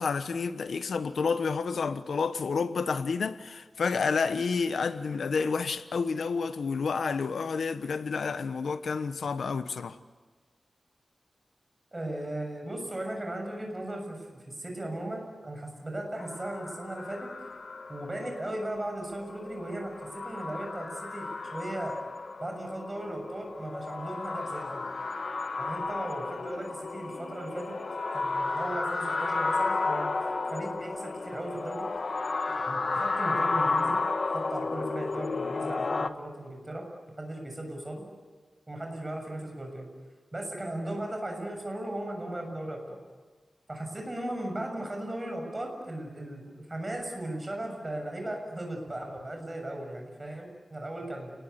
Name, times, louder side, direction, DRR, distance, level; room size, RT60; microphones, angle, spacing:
voice 1, 0.0-10.0, left 5 dB, 80° left, 1.1 m, -30 dB
voice 2, 11.9-17.3 17.9-20.9 21.1-21.9 22.4-24.8 25.6-27.7 28.1-30.2 30.5-31.8 32.5-34.0 34.3-36.8 37.2-38.0 38.7-39.9 40.3-43.0 43.7-51.3, right 1 dB, 20° right, 7.0 m, -37 dB
sound 1, 16.2-36.1, left 3 dB, 45° left, 1.3 m, -33 dB
30.0 x 20.0 x 9.5 m
wide cardioid pair, 135°, 0 cm